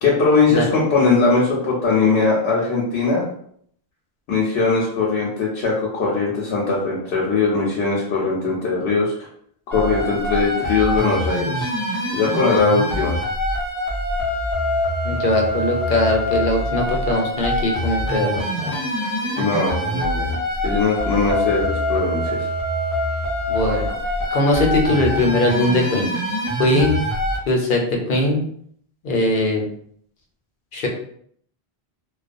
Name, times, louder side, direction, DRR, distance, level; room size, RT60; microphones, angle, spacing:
voice 1, 0.0-3.2 4.3-9.1 9.7-11.7 12.1-13.2 19.4-22.5, left 4 dB, 85° left, -4 dB, 0.9 m, -20 dB
sound 1, 9.7-27.4, equal, 20° left, 0.7 m, -24 dB
voice 2, 15.0-18.8 23.5-23.9 24.3-26.1 26.6-27.0 27.5-28.4 29.0-29.6 30.7-30.9, left 1 dB, 60° left, 1 dB, 0.7 m, -20 dB
2.3 x 2.2 x 2.5 m, 0.63 s
omnidirectional pair, 1.1 m